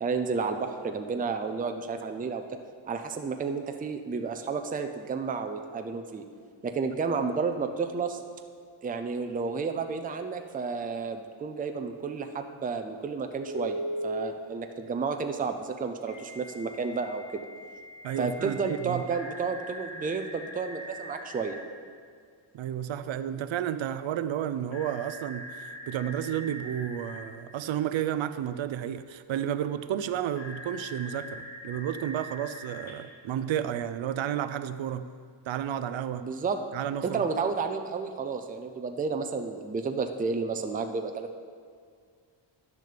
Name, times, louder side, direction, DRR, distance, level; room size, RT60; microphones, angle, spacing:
voice 1, 0.0-2.4 2.9-6.2 6.6-8.2 8.8-17.4 18.2-21.6 36.2-36.6 37.0-41.4, right 5 dB, 20° right, 6 dB, 0.4 m, -31 dB
Telephone, 13.5-14.2 16.1-21.6 24.7-27.2 30.4-32.9, equal, 70° left, 2.5 m, -41 dB
voice 2, 18.0-19.0 22.5-35.1 35.5-36.3 36.7-37.2, right 10 dB, 70° right, 12 dB, 0.6 m, -32 dB
10.5 x 6.5 x 6.7 m, 2.1 s
wide cardioid pair, 180°, 48 cm